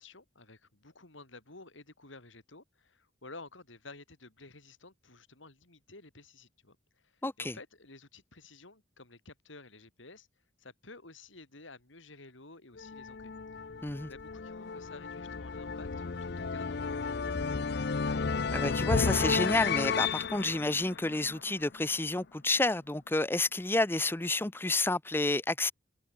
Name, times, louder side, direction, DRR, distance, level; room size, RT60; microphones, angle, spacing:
voice 1, 0.0-10.3 10.6-13.7 14.0-15.9 16.2-17.8, left 3 dB, 70° left, 3.8 m, -52 dB
voice 2, 7.2-7.6 13.8-14.1 18.5-25.7, left 2 dB, 10° left, 0.6 m, -30 dB
sound 1, 12.8-21.8, left 4 dB, 55° left, 0.6 m, -33 dB
head